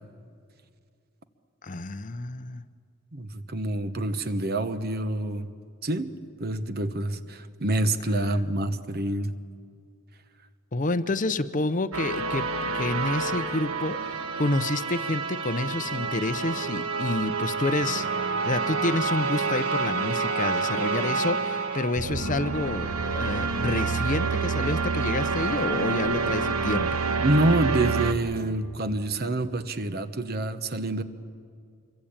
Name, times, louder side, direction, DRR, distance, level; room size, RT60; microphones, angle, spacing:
voice 1, 1.6-2.6 10.7-18.1 18.4-22.9 23.1-27.0, left 2 dB, 35° left, 12 dB, 0.7 m, -29 dB
voice 2, 3.1-5.5 5.8-9.3 27.2-31.0, right 1 dB, 45° right, 10 dB, 1.2 m, -27 dB
sound 1, 11.9-28.1, right 4 dB, 90° right, 1.5 m, -28 dB
26.0 x 23.5 x 8.8 m, 2.3 s
head